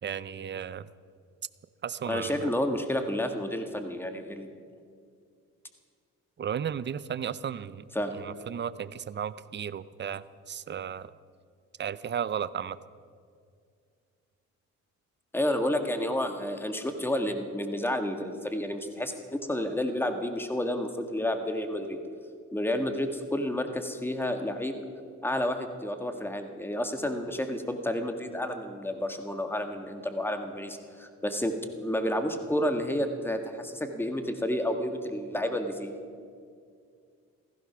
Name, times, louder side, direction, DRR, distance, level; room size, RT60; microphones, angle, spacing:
voice 1, 0.0-0.9 1.8-2.5 6.4-7.9 8.1-11.1 11.8-12.8, right 8 dB, 35° right, 16 dB, 0.6 m, -34 dB
voice 2, 2.0-4.5 7.9-8.1 15.3-22.0 22.5-24.7 25.2-31.6 31.8-35.9, left 1 dB, 5° left, 6 dB, 1.7 m, -30 dB
15.5 x 15.0 x 6.1 m, 2.2 s
cardioid pair, 90°, 30 cm